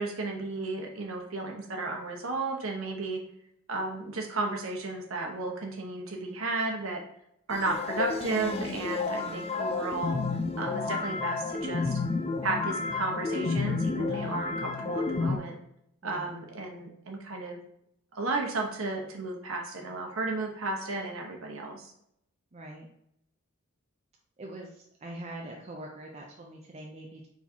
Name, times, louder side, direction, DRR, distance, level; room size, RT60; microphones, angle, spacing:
voice 1, 0.0-3.2 3.7-7.0 7.5-10.2 10.6-12.0 12.4-15.6 16.0-17.6 18.1-21.9, right 3 dB, 70° right, 1 dB, 1.0 m, -33 dB
sound 1, 7.5-15.4, left 4 dB, 30° left, 0.3 m, -31 dB
voice 2, 9.1-9.5 14.1-14.4 16.0-16.3 22.5-22.9 24.4-27.3, right 1 dB, 30° right, -1 dB, 0.5 m, -43 dB
4.5 x 4.1 x 2.8 m, 0.76 s
head